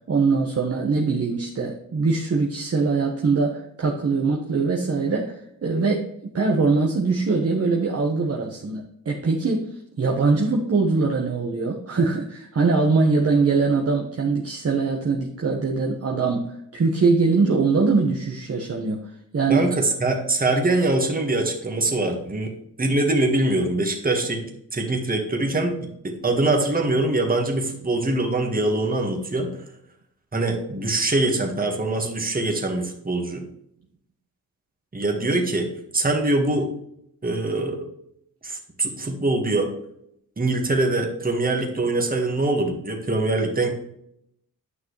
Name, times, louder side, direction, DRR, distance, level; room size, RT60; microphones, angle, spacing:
voice 1, 0.1-9.7 10.0-19.0 19.3-19.7, right 4 dB, 45° right, 0 dB, 1.2 m, -22 dB
voice 2, 19.5-22.5 22.8-24.4 24.7-29.5 30.3-33.4 34.9-35.7 35.9-36.7 37.2-37.8 38.4-39.7 40.4-43.7, right 2 dB, 25° right, 2 dB, 1.7 m, -23 dB
9.7 x 6.0 x 3.2 m, 0.74 s
cardioid pair, 90°, 34 cm